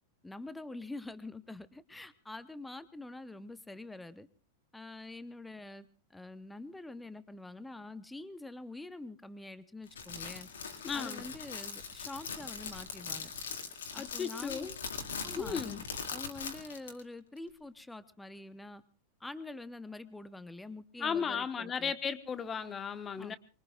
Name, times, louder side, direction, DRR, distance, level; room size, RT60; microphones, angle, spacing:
voice 1, 0.2-4.3 4.7-10.5 10.9-13.3 13.9-14.7 15.2-15.8 16.1-18.8 19.2-21.9 23.2-23.4, left 2 dB, 5° left, 14 dB, 0.9 m, -46 dB
Crackle, 9.9-17.0, left 5 dB, 65° left, 2.5 m, -41 dB
voice 2, 10.8-11.2 14.0-14.7 15.4-15.8 21.0-23.4, left 6 dB, 20° left, 13 dB, 1.3 m, -35 dB
25.5 x 23.0 x 2.5 m, 0.37 s
figure-of-eight pair, 90°, 0 cm